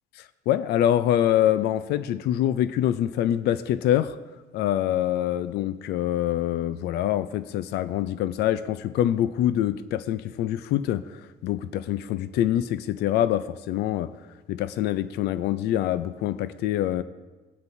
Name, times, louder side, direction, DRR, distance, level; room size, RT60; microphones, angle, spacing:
voice 1, 0.2-4.2 4.5-14.2 14.5-17.0, left 11 dB, 75° left, 0.5 m, -25 dB
17.5 x 8.1 x 2.7 m
cardioid pair, 110°, 17 cm